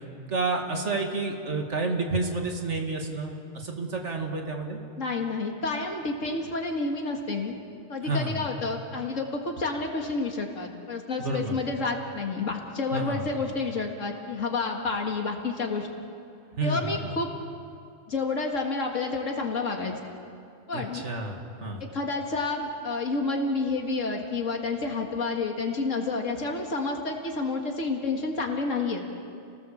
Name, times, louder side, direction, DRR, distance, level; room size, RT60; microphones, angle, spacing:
voice 1, 0.3-4.8 8.1-8.3 11.2-11.6 12.9-13.3 16.6-16.8 20.7-21.8, right 3 dB, 70° right, 2 dB, 2.5 m, -30 dB
voice 2, 5.0-7.5 7.9-15.9 16.6-17.3 18.1-19.9 20.7-21.0 21.8-29.0, left 3 dB, 85° left, 2 dB, 2.2 m, -29 dB
29.5 x 18.5 x 7.2 m, 2.5 s
omnidirectional pair, 1.3 m